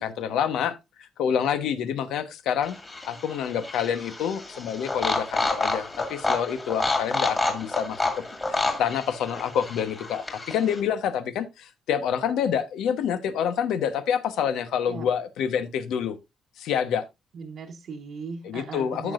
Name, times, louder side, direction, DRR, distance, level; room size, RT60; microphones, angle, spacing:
voice 1, 0.0-2.8 3.0-8.1 8.5-16.2 16.6-17.1 18.4-19.1, left 8 dB, 85° left, 1.1 m, -27 dB
sound 1, 2.6-10.8, left 2 dB, 15° left, 2.1 m, -29 dB
voice 2, 17.3-19.1, right 5 dB, 50° right, 1.1 m, -38 dB
14.0 x 6.1 x 2.5 m
cardioid pair, 170°, 0 cm